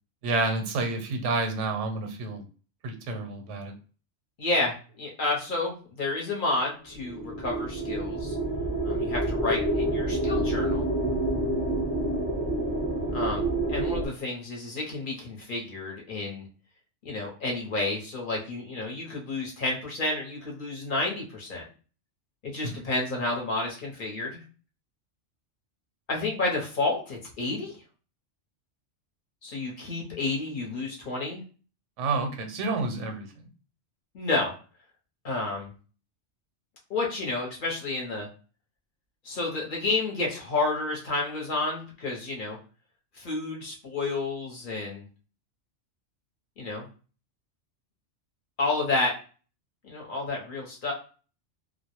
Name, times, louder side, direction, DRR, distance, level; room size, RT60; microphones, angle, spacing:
voice 1, 0.2-2.4 2.8-3.7 22.6-22.8 32.0-33.3, right 3 dB, 90° right, 5 dB, 0.9 m, -29 dB
voice 2, 4.4-8.4 8.8-10.9 13.1-13.4 13.7-16.4 17.0-21.7 22.4-24.4 26.1-27.8 29.4-31.4 34.1-34.5 35.2-35.7 36.9-38.3 39.2-42.6 43.1-45.0 46.6-46.9 48.6-49.1 49.9-50.9, left 2 dB, 50° left, -1 dB, 0.7 m, -30 dB
sound 1, 7.0-14.1, right 1 dB, 10° right, 0.6 m, -28 dB
2.2 x 2.0 x 2.8 m, 0.37 s
omnidirectional pair, 1.2 m